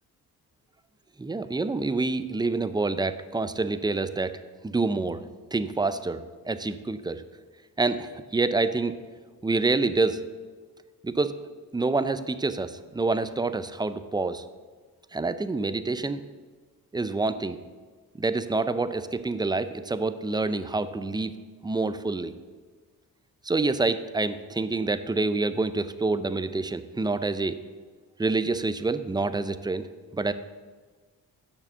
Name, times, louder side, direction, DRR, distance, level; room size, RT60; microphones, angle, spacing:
voice 1, 1.2-4.4 4.6-5.2 5.5-7.2 7.8-9.0 9.4-10.2 11.0-11.4 11.7-14.4 15.1-16.2 16.9-17.6 18.2-21.3 21.6-22.3 23.4-27.6 28.2-30.3, right 3 dB, 10° right, 12 dB, 0.5 m, -27 dB
8.8 x 6.7 x 6.7 m, 1.4 s
cardioid pair, 90°, 36 cm